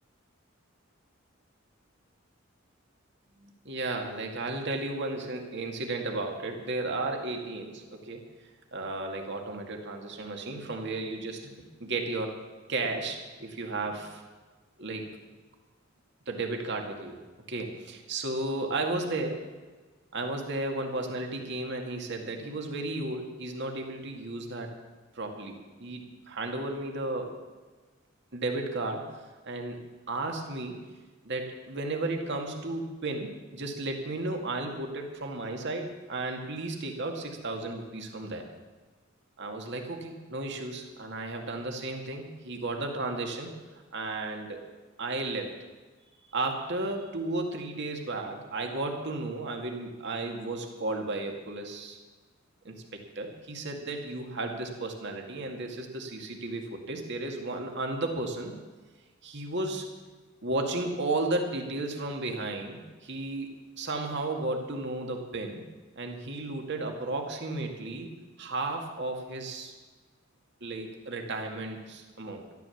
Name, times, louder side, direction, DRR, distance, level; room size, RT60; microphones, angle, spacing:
voice 1, 3.4-8.2 8.7-11.5 11.8-12.4 12.7-14.2 14.8-15.1 16.3-17.2 17.5-19.5 20.1-24.7 25.2-27.3 28.3-29.1 29.4-29.8 30.1-30.8 31.2-38.4 39.4-43.5 43.9-44.6 45.0-45.6 46.3-52.0 52.6-58.5 59.2-59.8 60.4-63.5 63.8-65.6 66.0-68.1 68.4-69.7 70.6-72.4, right 2 dB, 60° right, 3 dB, 2.1 m, -34 dB
13.0 x 12.5 x 7.2 m, 1.3 s
head